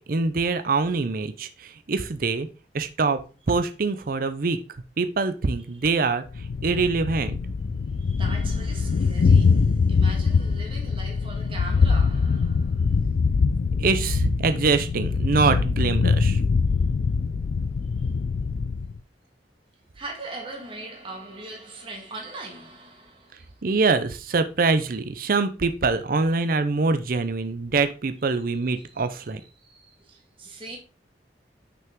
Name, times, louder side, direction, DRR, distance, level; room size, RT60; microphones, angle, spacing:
voice 1, 0.1-2.5 2.7-3.2 3.5-4.6 5.0-6.2 6.6-7.4 13.8-16.4 23.6-29.4, right 4 dB, 50° right, 0.6 m, -24 dB
Thunder, 6.3-19.0, left 5 dB, 60° left, 0.3 m, -23 dB
voice 2, 8.0-13.0 18.0-18.1 19.9-23.6 28.8-30.8, right 2 dB, 30° right, 1.6 m, -40 dB
6.0 x 5.9 x 3.6 m
head